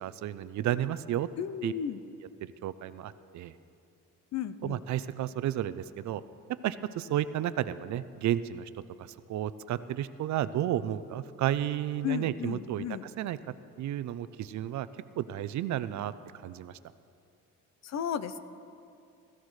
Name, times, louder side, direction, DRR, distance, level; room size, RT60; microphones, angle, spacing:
voice 1, 0.0-1.3 1.6-1.7 2.6-3.5 4.6-6.2 6.6-8.7 9.0-13.4 13.8-14.9 15.2-16.1 16.4-16.7, right 12 dB, 65° right, 14 dB, 0.6 m, -32 dB
voice 2, 1.4-2.0 4.3-4.8 12.0-13.0 17.8-18.4, left 9 dB, 55° left, 13 dB, 0.7 m, -34 dB
20.5 x 14.5 x 3.2 m, 2.6 s
cardioid pair, 105°, 31 cm